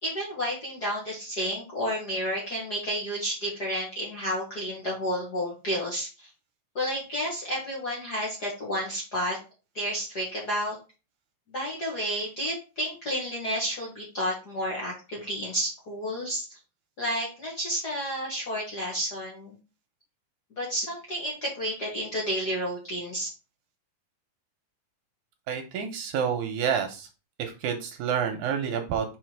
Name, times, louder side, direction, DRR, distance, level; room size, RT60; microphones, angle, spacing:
voice 1, 0.0-6.3 6.7-9.4 9.7-10.7 11.5-16.6 17.0-19.5 20.6-23.3, equal, 40° left, -4 dB, 1.7 m, -31 dB
voice 2, 25.5-27.1 27.4-29.2, right 7 dB, 75° right, 5 dB, 2.1 m, -29 dB
4.9 x 4.7 x 4.6 m, 0.32 s
omnidirectional pair, 3.8 m